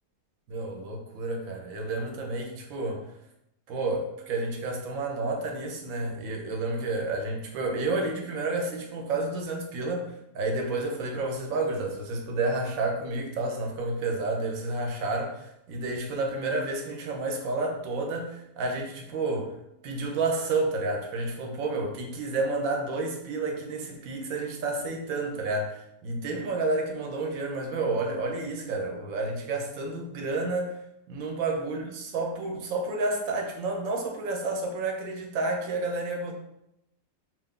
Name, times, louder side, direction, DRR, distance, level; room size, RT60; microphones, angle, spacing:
voice 1, 0.5-3.0 3.7-19.6 19.8-30.8 31.1-36.3, right 2 dB, 80° right, 1 dB, 1.0 m, -30 dB
2.5 x 2.3 x 3.6 m, 0.84 s
omnidirectional pair, 1.4 m